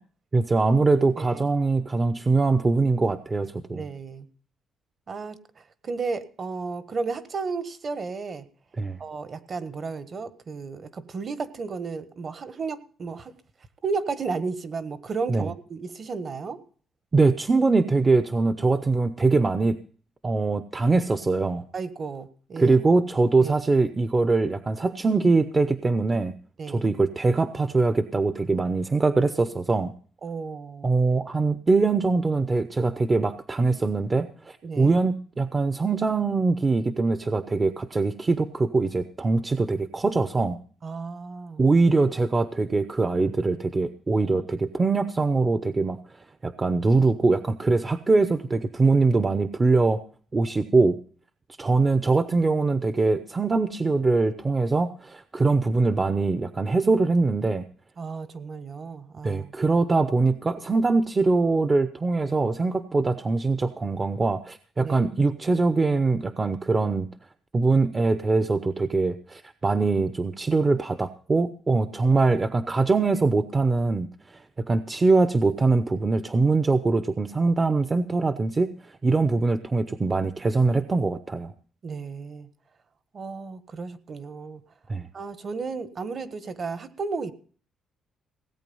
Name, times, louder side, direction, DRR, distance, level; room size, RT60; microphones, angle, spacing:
voice 1, 0.3-3.8 8.8-9.0 15.3-15.5 17.1-19.8 20.2-21.6 22.6-26.3 26.7-29.9 30.8-40.6 41.6-50.0 50.3-51.0 51.6-57.6 59.2-67.1 67.5-81.5 84.9-85.1, right 3 dB, 30° right, 11 dB, 0.8 m, -23 dB
voice 2, 1.2-1.5 3.7-4.2 5.1-8.5 9.0-13.3 13.8-16.6 21.7-22.8 23.4-23.6 26.6-26.9 30.2-30.9 34.6-34.9 40.8-41.6 58.0-59.5 64.8-65.0 81.8-82.5 83.1-84.6 85.1-87.3, right 4 dB, 45° right, 13 dB, 1.4 m, -33 dB
17.5 x 8.4 x 5.5 m, 0.44 s
cardioid pair, 90°, 0 cm